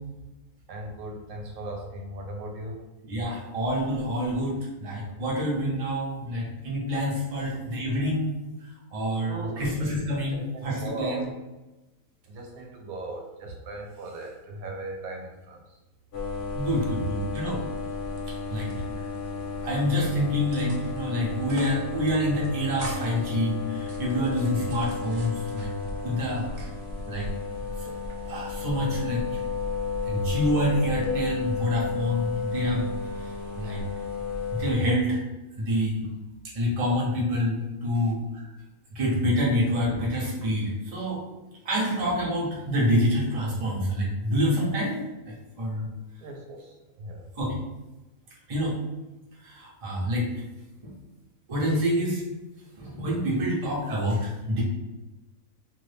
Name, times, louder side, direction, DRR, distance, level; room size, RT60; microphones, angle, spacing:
voice 1, 0.7-2.8 7.4-7.6 9.2-9.8 10.3-10.4 10.8-11.3 12.2-15.8 16.6-16.7 18.5-18.8 24.6-25.0 26.6-26.7 37.9-38.1 46.2-47.3, right 2 dB, 85° right, 1 dB, 1.1 m, -38 dB
voice 2, 3.0-8.4 8.9-11.2 16.5-17.6 18.5-18.7 19.6-25.7 26.0-26.5 27.0-27.3 28.3-29.4 30.0-32.9 33.2-33.3 33.5-33.8 34.5-35.2 35.6-36.1 36.5-38.2 38.9-41.2 41.6-45.8 47.4-47.5 48.5-48.8 49.4-50.3 50.8-50.9 51.5-52.2 52.8-54.6, equal, 30° right, -4 dB, 0.7 m, -27 dB
sound 1, 16.1-34.8, left 4 dB, 65° left, 0.9 m, -33 dB
sound 2, 17.2-18.2 18.5-19.4 19.8-20.1 20.5-21.0 21.3-21.8 22.0-22.1 22.4-23.3 23.8-26.0 26.4-27.0, right 2 dB, 60° right, 0.8 m, -45 dB
2.6 x 2.6 x 3.3 m, 1.1 s
omnidirectional pair, 1.5 m